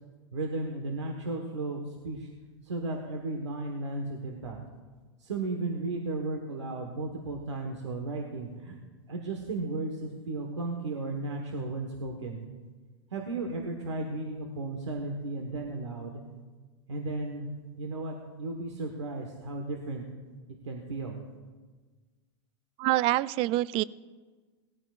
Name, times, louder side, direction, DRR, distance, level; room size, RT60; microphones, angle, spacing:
voice 1, 0.3-2.3 2.6-4.6 5.2-8.7 9.1-12.4 13.1-16.2 16.9-17.5 17.8-20.0 20.6-21.2, right 2 dB, 85° right, 2 dB, 1.4 m, -34 dB
voice 2, 22.8-23.8, right 16 dB, 40° right, 19 dB, 0.3 m, -26 dB
18.5 x 14.0 x 2.5 m, 1.3 s
hypercardioid pair, 100°, 15 cm